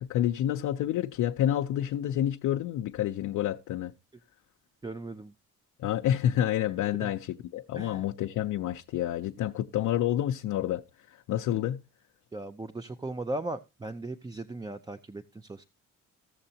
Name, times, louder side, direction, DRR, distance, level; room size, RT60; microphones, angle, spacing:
voice 1, 0.0-3.9 5.8-11.8, left 11 dB, 80° left, 0.6 m, -29 dB
voice 2, 4.8-5.3 7.0-7.1 7.7-8.0 12.3-15.6, right 2 dB, 15° right, 0.5 m, -37 dB
15.5 x 6.6 x 2.8 m
cardioid pair, 90°, 30 cm